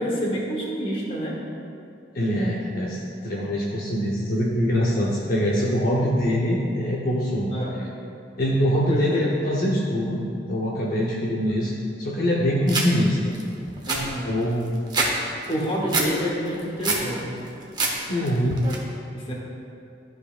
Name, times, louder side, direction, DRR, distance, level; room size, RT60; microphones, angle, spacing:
voice 1, 0.0-1.4 7.5-7.7 8.9-9.3 11.6-11.7 13.9-14.3 15.5-17.4 19.1-19.3, equal, 30° left, -3 dB, 1.1 m, -28 dB
voice 2, 2.1-7.5 8.4-10.2 10.5-11.7 12.0-13.3 14.2-14.6 18.1-18.6, equal, 50° left, -5 dB, 0.7 m, -23 dB
sound 1, 12.7-12.9 13.3-13.4 13.7-15.1 15.4-16.1 16.5-17.1 17.5-17.9 18.2-18.7, right 3 dB, 25° right, 0.8 m, -25 dB
12.0 x 5.2 x 2.4 m, 2.6 s
head